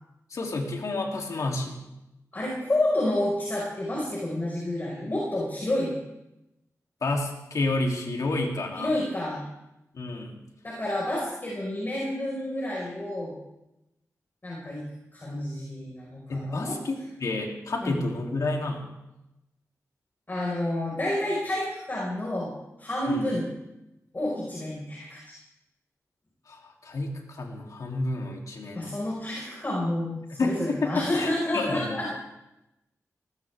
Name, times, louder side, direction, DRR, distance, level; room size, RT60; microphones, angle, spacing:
voice 1, 0.3-1.8 7.0-8.9 9.9-10.4 16.3-18.8 23.1-23.3 26.5-28.9 30.3-32.0, left 2 dB, 75° left, 0 dB, 3.3 m, -30 dB
voice 2, 2.3-5.9 8.8-9.4 10.6-13.3 14.4-14.8 15.1-16.8 17.8-18.0 20.3-22.5 22.8-23.5 24.1-25.4 28.7-32.2, left 1 dB, 35° left, -4 dB, 5.4 m, -29 dB
21.0 x 18.5 x 3.7 m, 0.93 s
cardioid pair, 70°, 6 cm